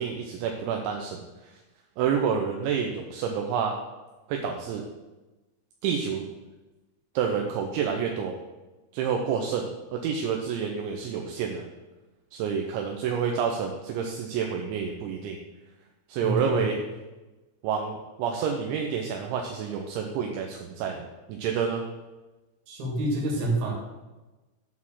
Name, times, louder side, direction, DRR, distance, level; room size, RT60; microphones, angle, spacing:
voice 1, 0.0-1.6 2.0-3.7 4.3-4.8 5.8-6.3 7.2-8.4 8.9-11.7 12.3-15.4 16.1-16.8 17.6-21.9, right 7 dB, 80° right, 2 dB, 3.0 m, -29 dB
voice 2, 16.2-16.7 22.7-23.7, right 2 dB, 55° right, -1 dB, 3.5 m, -27 dB
9.6 x 4.2 x 7.3 m, 1.1 s
omnidirectional pair, 5.5 m